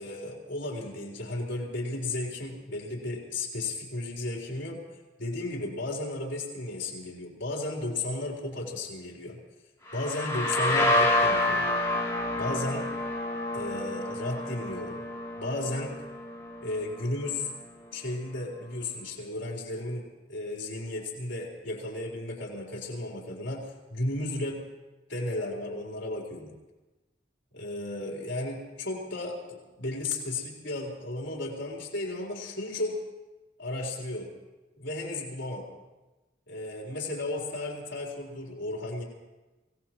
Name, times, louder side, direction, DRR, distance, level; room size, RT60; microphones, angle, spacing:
voice 1, 0.0-4.8 5.2-9.4 9.9-11.7 12.3-12.9 13.5-15.0 15.4-15.9 16.6-17.5 17.9-24.6 25.1-26.5 27.5-33.0 33.6-34.3 34.8-35.7 36.5-39.0, left 2 dB, 80° left, -2 dB, 4.1 m, -34 dB
sound 1, 9.9-17.4, left 1 dB, 15° left, 3.1 m, -29 dB
24.5 x 17.5 x 3.1 m, 1.1 s
head